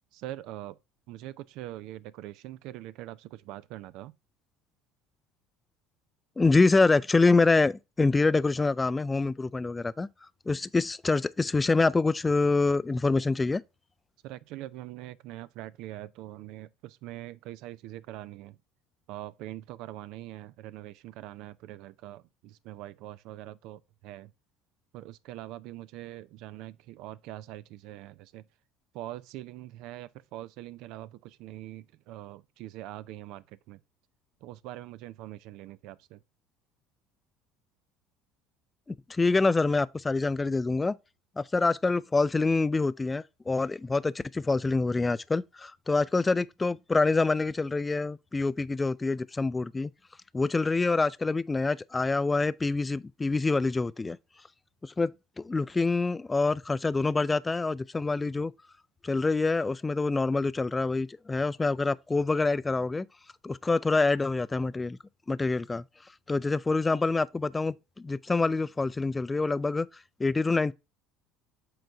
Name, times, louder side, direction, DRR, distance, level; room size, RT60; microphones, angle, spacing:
voice 1, 0.1-0.8 1.1-4.1 14.2-18.6 19.1-24.3 24.9-28.4 28.9-33.8 34.4-36.2, right 14 dB, 70° right, 0.5 m, -43 dB
voice 2, 6.4-10.1 10.5-13.6 38.9-41.0 41.4-49.9 50.3-54.2 54.8-55.1 55.4-58.5 59.0-63.1 63.4-65.0 65.3-65.8 66.3-69.9 70.2-70.7, left 3 dB, 20° left, 0.4 m, -26 dB
7.8 x 4.0 x 4.5 m
supercardioid pair, 80°, 0 cm